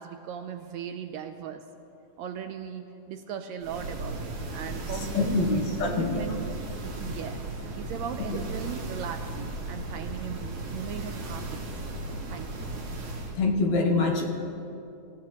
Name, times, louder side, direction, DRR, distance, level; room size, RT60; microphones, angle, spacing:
voice 1, 0.0-1.6 2.2-5.4 5.8-6.5 7.0-7.4 7.7-11.7 12.3-12.7, right 8 dB, 80° right, 7 dB, 1.6 m, -38 dB
sound 1, 3.6-13.4, right 2 dB, 60° right, 3.0 m, -36 dB
voice 2, 5.2-6.3 13.4-14.3, left 3 dB, 65° left, 2 dB, 2.2 m, -25 dB
26.0 x 16.0 x 3.0 m, 2.7 s
omnidirectional pair, 3.7 m